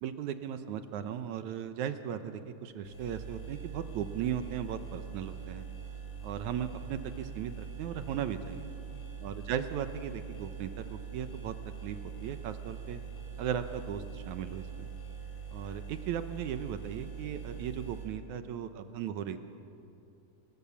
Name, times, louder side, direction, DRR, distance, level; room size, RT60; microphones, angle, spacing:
voice 1, 0.0-5.7 6.2-8.7 9.2-11.5 11.8-13.0 13.4-14.9 15.5-19.4, right 9 dB, 75° right, 10 dB, 2.2 m, -37 dB
sound 1, 2.8-18.1, right 7 dB, 75° left, 6.1 m, -43 dB
28.5 x 21.0 x 7.1 m, 2.6 s
omnidirectional pair, 3.7 m